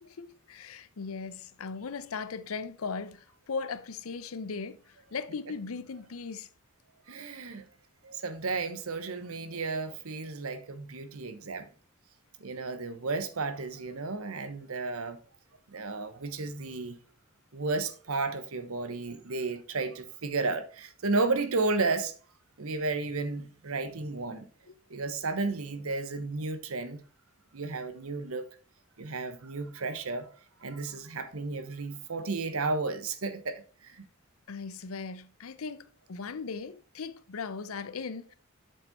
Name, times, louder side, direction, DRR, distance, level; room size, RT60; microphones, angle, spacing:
voice 1, 0.0-6.5 24.7-24.8 34.5-38.4, left 5 dB, 85° left, 0.6 m, -38 dB
voice 2, 7.1-7.7 8.0-11.7 12.4-15.2 15.7-17.0 17.5-22.1 22.6-24.5 24.9-27.0 27.5-28.5 29.0-30.3 30.6-34.1, right 3 dB, 85° right, 1.0 m, -33 dB
7.4 x 5.5 x 4.1 m
head